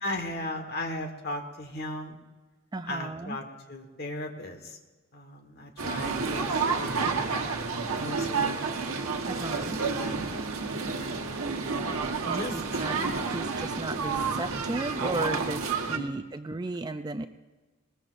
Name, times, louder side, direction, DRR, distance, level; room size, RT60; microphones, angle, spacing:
voice 1, 0.0-2.2 2.9-4.8 5.1-7.0 7.9-8.6 9.3-10.2 10.8-11.3 12.3-12.6 15.9-16.0, left 1 dB, 45° left, 4 dB, 1.5 m, -37 dB
voice 2, 2.7-3.4 9.3-9.8 12.3-13.0 13.2-17.3, right 2 dB, 20° right, 9 dB, 0.3 m, -35 dB
sound 1, 5.8-16.0, right 4 dB, 80° right, 1.3 m, -30 dB
20.5 x 20.0 x 2.6 m, 1.2 s
head